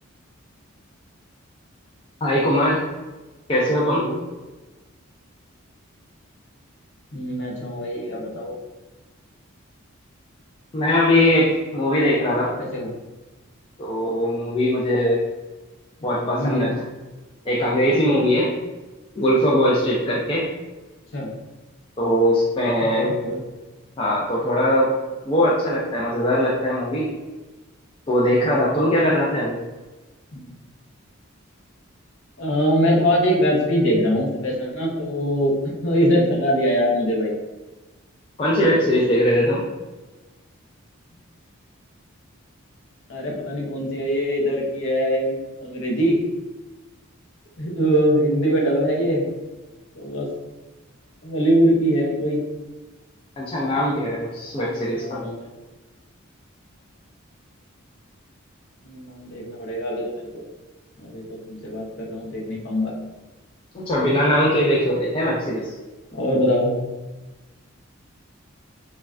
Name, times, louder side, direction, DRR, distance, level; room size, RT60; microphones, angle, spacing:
voice 1, 2.2-2.8 3.5-4.1 10.7-12.5 13.8-15.2 16.0-16.7 17.5-18.5 19.2-20.4 22.0-23.1 24.0-24.9 25.2-27.1 28.1-29.6 38.4-39.6 53.4-55.2 63.7-65.7, equal, 25° left, -5 dB, 0.3 m, -20 dB
voice 2, 7.1-8.5 12.4-12.9 16.3-16.7 21.1-21.3 22.9-23.4 30.3-30.5 32.4-37.3 43.1-46.2 47.6-49.3 50.0-50.3 51.2-52.4 54.7-55.5 58.8-60.4 61.0-62.9 66.1-66.8, equal, 60° left, -2 dB, 0.6 m, -22 dB
3.1 x 2.2 x 2.3 m, 1.2 s
head